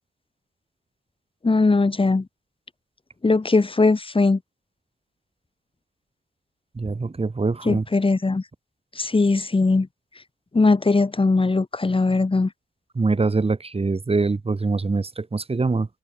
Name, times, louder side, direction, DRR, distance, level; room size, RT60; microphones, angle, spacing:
voice 1, 1.4-2.3 3.2-4.4 7.6-8.4 9.0-9.9 10.5-12.5, left 3 dB, 30° left, 5.8 m, -20 dB
voice 2, 6.8-7.8 13.0-15.9, right 3 dB, 30° right, 6.3 m, -23 dB
cardioid pair, 100°, 19 cm